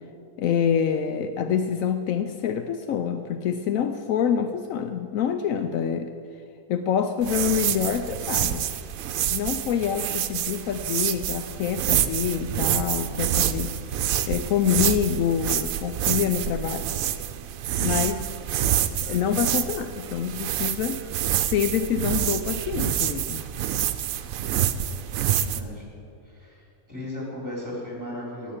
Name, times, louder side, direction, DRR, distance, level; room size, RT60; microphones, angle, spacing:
voice 1, 0.4-6.1 6.7-8.7 9.3-13.8 14.3-16.9 17.8-18.3 19.0-21.0 21.4-23.4, left 8 dB, 75° left, 9 dB, 0.9 m, -26 dB
sound 1, 7.2-25.6, right 10 dB, 75° right, 1.0 m, -27 dB
voice 2, 25.4-25.8 26.2-28.6, left 1 dB, 10° right, -4 dB, 3.8 m, -36 dB
9.7 x 8.8 x 8.6 m, 2.4 s
omnidirectional pair, 1.5 m